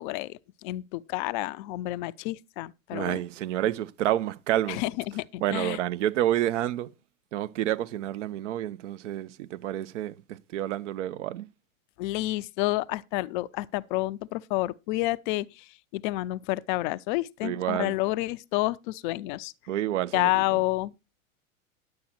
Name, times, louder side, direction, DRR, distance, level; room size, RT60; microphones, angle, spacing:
voice 1, 0.0-3.2 4.7-5.8 12.0-19.5 20.1-20.9, left 18 dB, 40° left, 0.5 m, -29 dB
voice 2, 2.9-4.8 5.4-6.9 7.3-11.5 17.4-18.0 19.7-20.4, right 13 dB, 60° right, 0.8 m, -29 dB
10.5 x 7.7 x 4.3 m
hypercardioid pair, 100°, 42 cm